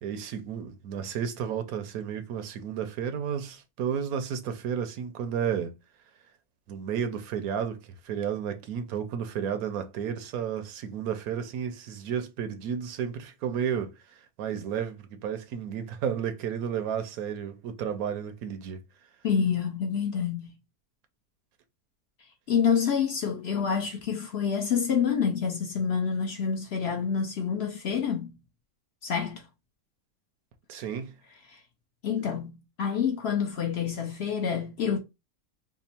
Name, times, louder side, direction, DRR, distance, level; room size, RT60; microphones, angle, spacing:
voice 1, 0.0-5.8 6.7-18.8 30.7-31.2, right 8 dB, 85° right, 1.1 m, -32 dB
voice 2, 19.2-20.5 22.5-28.4 29.0-29.5 31.5-31.6 32.0-35.0, left 7 dB, 55° left, 0.8 m, -27 dB
3.4 x 2.0 x 4.2 m
omnidirectional pair, 1.5 m